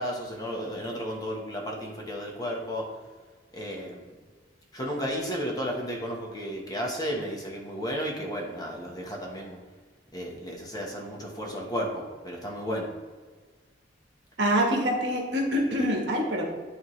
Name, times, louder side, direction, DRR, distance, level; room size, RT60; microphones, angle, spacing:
voice 1, 0.0-2.9 3.5-4.0 4.7-9.6 10.1-12.9, equal, 20° left, -1 dB, 1.1 m, -33 dB
voice 2, 14.4-16.4, equal, 65° right, 0 dB, 1.3 m, -25 dB
10.0 x 3.5 x 3.1 m, 1.4 s
head